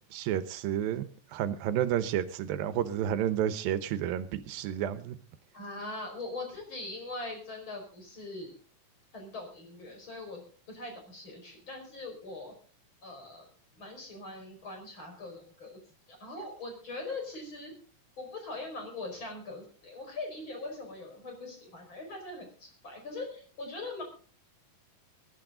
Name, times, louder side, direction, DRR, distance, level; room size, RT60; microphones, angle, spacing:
voice 1, 0.1-5.2, right 10 dB, 90° right, 13 dB, 2.8 m, -31 dB
voice 2, 5.5-8.5 9.1-12.5 13.0-13.5 13.8-15.8 16.1-17.8 18.2-24.0, left 2 dB, 35° left, 3 dB, 5.6 m, -41 dB
20.5 x 12.0 x 3.8 m, 0.40 s
omnidirectional pair, 4.0 m